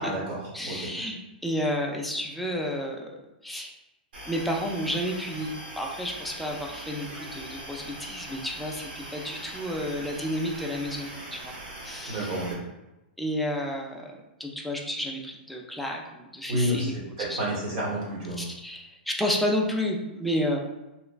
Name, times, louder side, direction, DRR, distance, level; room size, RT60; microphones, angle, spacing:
voice 1, 0.0-0.9 12.1-12.6 16.5-18.4, equal, 45° right, -5 dB, 1.3 m, -30 dB
voice 2, 0.5-3.1 3.4-3.7 4.3-11.6 11.8-12.3 13.2-14.1 14.4-17.0 17.3-17.4 18.4-20.6, equal, ahead, -1 dB, 0.3 m, -31 dB
sound 1, 4.1-12.5, right 1 dB, 85° right, 0.8 m, -41 dB
3.0 x 2.2 x 2.4 m, 1.0 s
hypercardioid pair, 140°, 5 cm